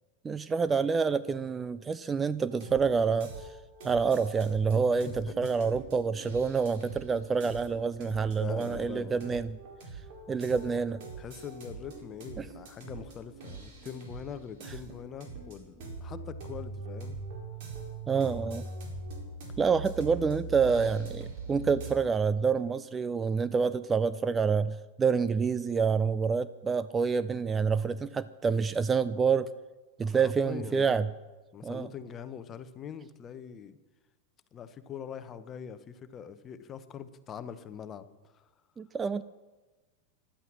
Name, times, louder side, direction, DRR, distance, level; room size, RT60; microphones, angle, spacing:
voice 1, 0.2-3.5 3.8-9.6 10.3-11.0 12.4-12.5 18.1-18.6 19.6-29.5 30.0-31.1 31.6-31.9 38.8-39.2, right 5 dB, 15° right, 14 dB, 0.4 m, -27 dB
sound 1, 2.5-21.9, right 3 dB, 50° right, 4.4 m, -42 dB
voice 2, 8.4-9.2 11.2-17.2 30.0-31.0 31.5-33.8 34.5-38.5, left 8 dB, 25° left, 12 dB, 1.0 m, -43 dB
15.0 x 11.5 x 6.2 m, 1.2 s
figure-of-eight pair, 90°, 0 cm